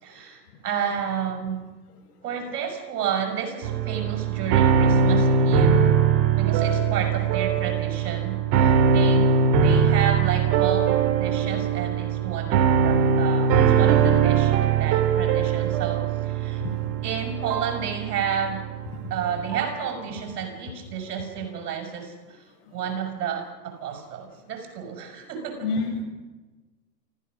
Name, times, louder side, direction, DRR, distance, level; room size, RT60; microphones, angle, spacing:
voice 1, 0.0-1.7 2.2-5.9 6.4-9.3 9.6-16.6 17.0-18.7 19.1-22.4 22.7-25.7, right 7 dB, 65° right, 5 dB, 6.4 m, -31 dB
sound 1, 3.6-19.9, right 6 dB, 40° right, 3.6 m, -21 dB
voice 2, 16.4-16.8 19.4-19.5 20.7-20.8 22.6-22.8 25.2-25.3 25.6-26.0, left 3 dB, 65° left, 4 dB, 7.5 m, -31 dB
29.0 x 15.0 x 6.3 m, 1.2 s
hypercardioid pair, 120°, 49 cm